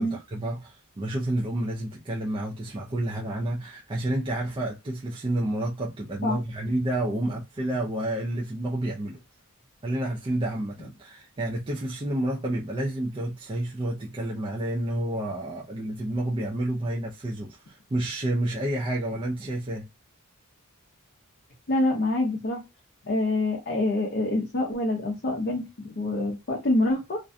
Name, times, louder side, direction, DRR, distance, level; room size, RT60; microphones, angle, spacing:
voice 1, 0.0-9.2 9.8-19.9, right 1 dB, 25° right, 0.4 m, -30 dB
voice 2, 21.7-22.6 23.0-27.2, left 2 dB, 45° left, 0.6 m, -26 dB
2.5 x 2.2 x 2.5 m
head